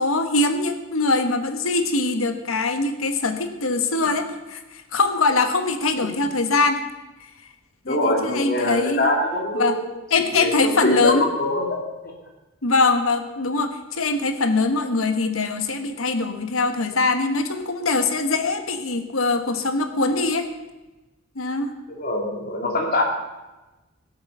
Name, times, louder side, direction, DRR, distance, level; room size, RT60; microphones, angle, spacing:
voice 1, 0.0-6.8 7.9-9.1 9.6-9.8 10.1-11.3 12.6-20.5 21.3-21.7, left 3 dB, 80° left, 8 dB, 1.4 m, -22 dB
voice 2, 7.8-12.1 21.9-23.0, left 1 dB, 45° left, 0 dB, 2.3 m, -24 dB
17.5 x 7.9 x 6.8 m, 1.1 s
head